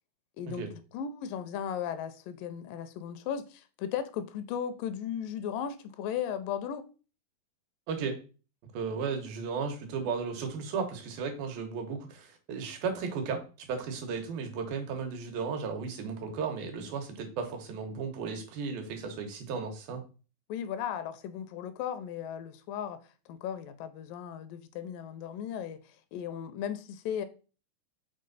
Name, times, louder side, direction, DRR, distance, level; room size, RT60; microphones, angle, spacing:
voice 1, 0.4-6.9 20.5-23.0 23.3-25.8 26.1-27.3, left 8 dB, 80° left, 2.1 m, -36 dB
voice 2, 7.9-8.2 8.7-13.4 13.7-20.0, right 5 dB, 85° right, 3.0 m, -35 dB
6.3 x 4.4 x 4.0 m
omnidirectional pair, 4.1 m